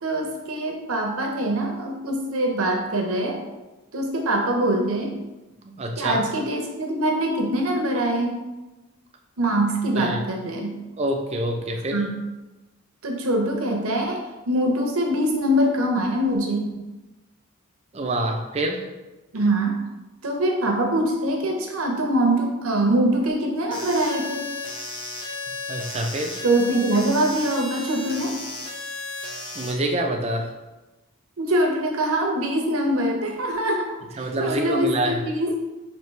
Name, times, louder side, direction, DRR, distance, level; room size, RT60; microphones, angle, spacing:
voice 1, 0.0-3.4 3.9-5.3 6.0-8.4 9.4-10.8 11.9-12.2 13.0-14.2 14.5-16.8 19.3-19.8 20.2-24.5 26.4-28.3 31.4-35.6, right 1 dB, 75° right, 1 dB, 0.8 m, -23 dB
voice 2, 5.6-6.2 9.9-10.2 11.0-12.0 17.9-18.8 25.7-26.4 29.5-30.5 34.2-35.3, right 1 dB, 30° right, 2 dB, 0.4 m, -26 dB
sound 1, 23.7-29.7, left 3 dB, 20° left, 0.7 m, -34 dB
4.5 x 2.9 x 3.2 m, 1.1 s
head